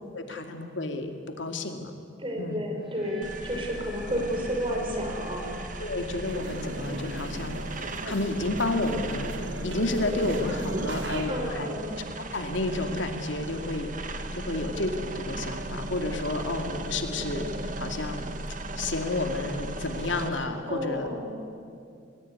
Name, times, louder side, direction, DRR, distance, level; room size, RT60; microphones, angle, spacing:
voice 1, 0.1-1.1 1.4-1.9 2.4-2.6 5.8-9.3 9.6-11.7 12.3-18.2 18.8-21.1, left 2 dB, 75° left, 5 dB, 2.5 m, -31 dB
voice 2, 2.2-5.5 11.3-11.9 20.7-21.3, equal, 25° right, 2 dB, 5.1 m, -31 dB
sound 1, 2.7-8.8, equal, ahead, 3.9 m, -49 dB
sound 2, 3.2-20.3, right 2 dB, 45° right, 1.7 m, -37 dB
sound 3, 6.2-11.3, right 1 dB, 75° right, 3.4 m, -38 dB
28.5 x 20.5 x 9.7 m, 2.5 s
head